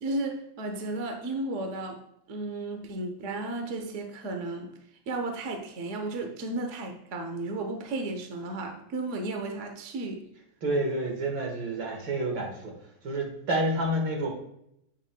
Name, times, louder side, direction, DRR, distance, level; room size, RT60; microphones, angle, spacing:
voice 1, 0.0-2.0 2.3-4.7 5.1-10.3, right 2 dB, 45° right, 1.1 m, -34 dB
voice 2, 10.6-12.7 13.0-14.3, right 1 dB, 70° right, 2.4 m, -29 dB
9.1 x 8.2 x 2.3 m
omnidirectional pair, 2.2 m